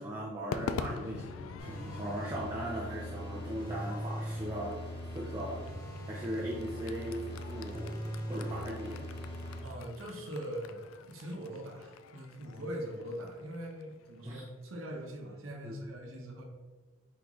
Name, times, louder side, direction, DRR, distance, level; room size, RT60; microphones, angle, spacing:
voice 1, 0.0-5.7 6.1-8.0 8.3-9.1 14.2-14.4 15.6-15.8, right 1 dB, 20° right, -5 dB, 0.6 m, -39 dB
Crowd / Fireworks, 0.5-14.9, left 6 dB, 90° left, 0.3 m, -46 dB
sound 1, 1.6-9.6, equal, 45° left, 1.5 m, -40 dB
voice 2, 9.6-16.4, equal, 85° right, 0 dB, 0.8 m, -42 dB
4.6 x 3.8 x 3.1 m, 1.3 s
head